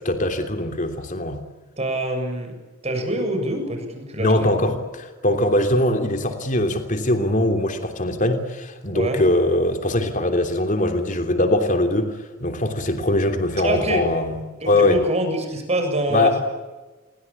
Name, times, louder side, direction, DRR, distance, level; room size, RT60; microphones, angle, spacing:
voice 1, 0.0-1.4 4.2-14.4 14.7-15.0 16.1-16.4, left 1 dB, 40° left, 6 dB, 3.2 m, -21 dB
voice 2, 1.8-2.6 2.8-4.8 8.9-9.2 13.6-14.1 14.6-16.4, right 1 dB, 35° right, 5 dB, 7.4 m, -25 dB
28.5 x 23.0 x 8.7 m, 1.2 s
head